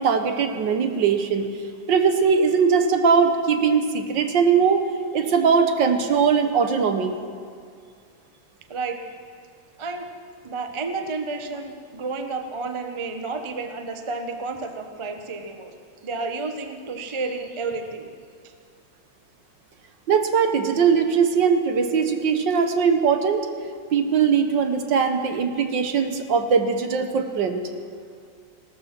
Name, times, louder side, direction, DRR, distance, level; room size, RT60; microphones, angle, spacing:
voice 1, 0.0-1.5 1.9-4.9 5.1-7.2 20.1-23.5 23.9-27.6, right 6 dB, 65° right, 6 dB, 1.7 m, -20 dB
voice 2, 8.7-9.0 9.8-10.1 10.4-15.7 16.0-18.1 18.4-18.5, right 3 dB, 35° right, 6 dB, 0.5 m, -31 dB
17.0 x 13.0 x 5.9 m, 2.1 s
omnidirectional pair, 2.2 m